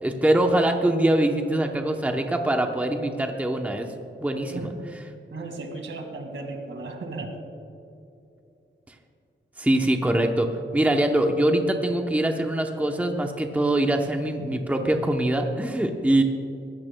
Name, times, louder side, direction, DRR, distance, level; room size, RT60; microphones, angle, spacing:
voice 1, 0.0-3.9 4.2-4.7 9.6-16.2, right 1 dB, 5° right, 3 dB, 0.8 m, -23 dB
voice 2, 5.3-7.3, right 3 dB, 75° right, 4 dB, 2.0 m, -35 dB
21.0 x 15.5 x 2.2 m, 2.7 s
wide cardioid pair, 150°, 21 cm